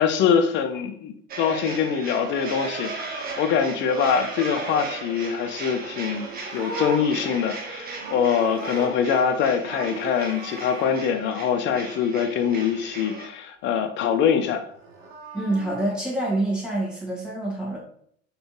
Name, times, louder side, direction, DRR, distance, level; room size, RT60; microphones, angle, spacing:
voice 1, 0.0-14.6, left 7 dB, 30° left, 7 dB, 0.5 m, -24 dB
sound 1, 1.3-13.3, right 3 dB, 20° right, 0.9 m, -36 dB
Livestock farm animals working animals, 5.9-9.3 9.6-10.9 14.7-15.9, right 3 dB, 60° right, 1.0 m, -36 dB
voice 2, 15.3-17.8, right 1 dB, ahead, -5 dB, 1.7 m, -26 dB
4.1 x 3.3 x 2.9 m, 0.64 s
figure-of-eight pair, 80°, 40 cm